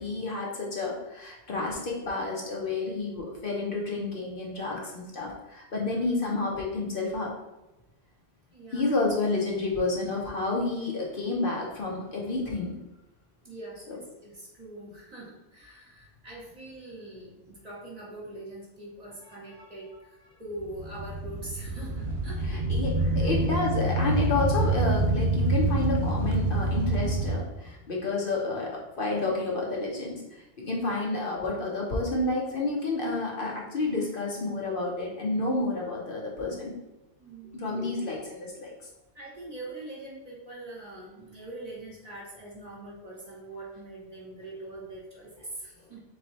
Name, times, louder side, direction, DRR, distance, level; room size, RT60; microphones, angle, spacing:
voice 1, 0.0-7.3 8.7-12.7 13.9-14.0 22.5-30.2 30.6-36.7 37.5-38.7, left 2 dB, 55° left, -2 dB, 0.9 m, -30 dB
voice 2, 8.5-9.0 13.4-22.6 23.0-23.5 37.2-37.8 39.1-46.0, right 1 dB, 35° right, -4 dB, 1.1 m, -43 dB
sound 1, 20.6-27.3, right 2 dB, 65° right, 0.8 m, -26 dB
3.8 x 3.3 x 4.0 m, 0.97 s
omnidirectional pair, 1.2 m